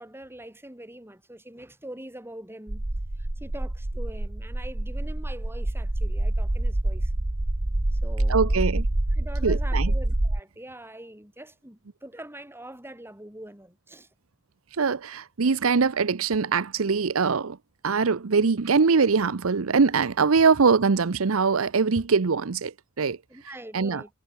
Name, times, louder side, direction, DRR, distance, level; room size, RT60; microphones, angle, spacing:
voice 1, 0.0-2.8 3.2-7.1 7.9-8.6 9.1-14.1 23.3-24.1, right 1 dB, 10° right, 7.9 m, -43 dB
sound 1, 2.7-10.4, right 1 dB, 30° right, 0.9 m, -26 dB
voice 2, 8.3-8.9 9.4-9.9 14.7-17.6 17.8-23.2 23.7-24.0, right 5 dB, 90° right, 0.7 m, -22 dB
head